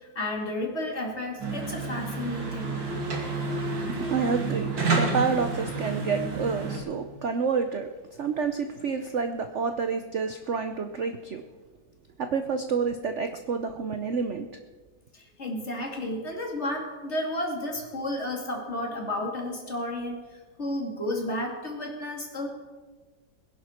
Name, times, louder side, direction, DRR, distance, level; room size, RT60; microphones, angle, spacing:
voice 1, 0.1-2.8 15.1-20.2 20.6-22.5, left 1 dB, 35° left, 1 dB, 2.6 m, -32 dB
sound 1, 1.4-6.8, right 3 dB, 75° right, 3.1 m, -30 dB
voice 2, 3.9-7.9 8.2-11.4 12.2-14.5, right 5 dB, 55° right, 8 dB, 0.8 m, -29 dB
21.0 x 11.0 x 4.4 m, 1.3 s
omnidirectional pair, 2.0 m